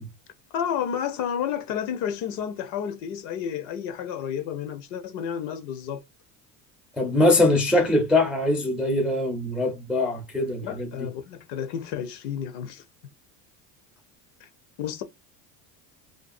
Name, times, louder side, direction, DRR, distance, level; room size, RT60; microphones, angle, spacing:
voice 1, 0.5-6.0 10.6-12.8 14.4-14.5 14.8-15.0, left 8 dB, 65° left, 0.7 m, -31 dB
voice 2, 7.0-10.9, left 2 dB, ahead, 0.4 m, -22 dB
2.6 x 2.3 x 2.4 m
supercardioid pair, 90°, 49 cm